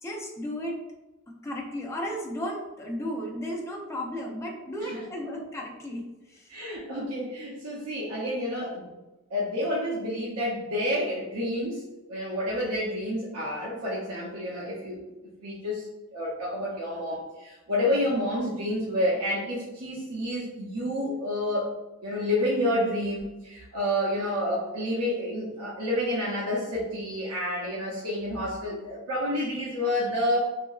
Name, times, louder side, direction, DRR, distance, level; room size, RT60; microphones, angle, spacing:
voice 1, 0.0-0.8 1.4-6.5, equal, 10° left, -1 dB, 0.4 m, -34 dB
voice 2, 6.5-8.8 9.3-11.8 12.1-15.0 15.4-15.9 16.1-21.7 22.0-30.4, left 1 dB, 80° right, -6 dB, 0.6 m, -29 dB
2.8 x 2.4 x 2.3 m, 1.1 s
head